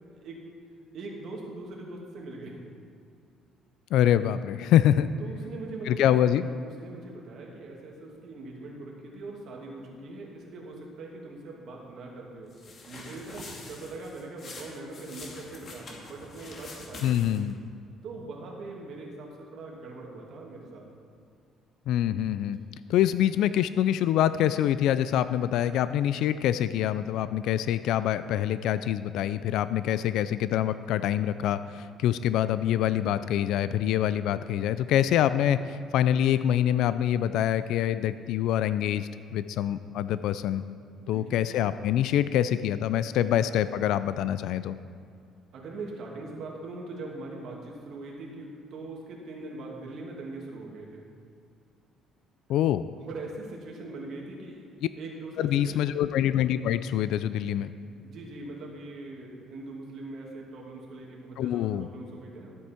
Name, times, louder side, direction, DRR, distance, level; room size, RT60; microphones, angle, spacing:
voice 1, 0.1-0.5 0.9-2.6 5.2-6.1 6.6-12.5 12.9-17.4 18.0-20.9 22.4-22.7 41.0-41.4 43.0-43.5 45.5-51.1 53.0-54.7 55.0-55.9 58.0-62.6, right 2 dB, 60° right, -1 dB, 2.3 m, -41 dB
voice 2, 3.9-5.1 5.9-6.5 17.0-17.6 21.9-22.6 22.9-40.6 41.1-44.8 52.5-52.8 55.4-57.7 61.4-61.9, left 11 dB, 80° left, 13 dB, 0.3 m, -25 dB
sound 1, 12.5-17.5, left 2 dB, 45° left, 2.1 m, -45 dB
13.5 x 8.1 x 4.4 m, 2.3 s
cardioid pair, 120°, 0 cm